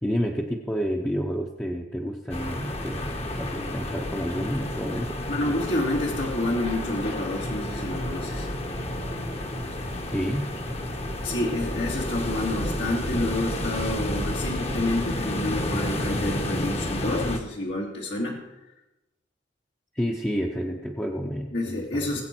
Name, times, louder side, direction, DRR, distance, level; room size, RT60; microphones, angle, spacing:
voice 1, 0.0-5.2 10.1-10.5 19.9-22.1, equal, 10° left, -1 dB, 0.8 m, -29 dB
sound 1, 2.3-17.4, left 1 dB, 35° left, 1.1 m, -31 dB
voice 2, 5.3-8.5 11.2-18.4 21.5-22.2, left 1 dB, 80° left, -2 dB, 2.3 m, -28 dB
19.0 x 8.1 x 4.5 m, 0.97 s
head